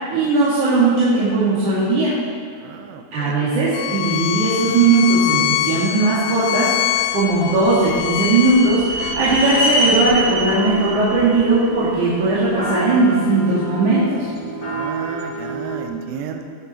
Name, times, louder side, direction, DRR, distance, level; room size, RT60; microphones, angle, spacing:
voice 1, 0.0-2.1 3.1-14.3, right 3 dB, 50° right, -10 dB, 3.1 m, -18 dB
voice 2, 2.6-3.5 14.6-16.4, right 8 dB, 75° right, 4 dB, 2.7 m, -33 dB
Bowed string instrument, 3.7-9.2, left 15 dB, 85° left, 2.9 m, -24 dB
sound 1, 7.2-12.4, equal, 25° right, 1.6 m, -25 dB
sound 2, 8.9-15.8, right 2 dB, 45° left, 1.2 m, -30 dB
19.0 x 8.8 x 4.4 m, 2.2 s
omnidirectional pair, 5.6 m